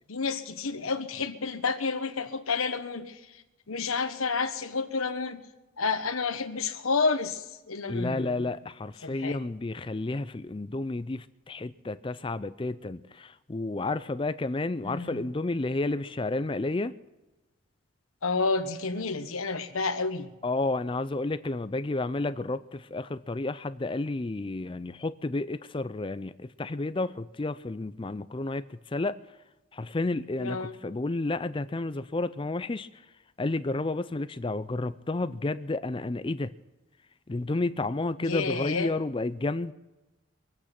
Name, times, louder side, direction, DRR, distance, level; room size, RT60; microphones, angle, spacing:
voice 1, 0.1-3.4 3.7-5.4 5.8-8.4 9.0-9.4 14.8-15.2 18.2-20.3 30.4-30.8 38.2-38.9, left 4 dB, 80° left, 8 dB, 1.3 m, -30 dB
voice 2, 7.9-16.9 20.4-29.2 29.7-32.9 33.4-36.5 37.3-39.7, left 2 dB, 25° left, 13 dB, 0.4 m, -31 dB
24.0 x 8.7 x 5.9 m, 1.1 s
head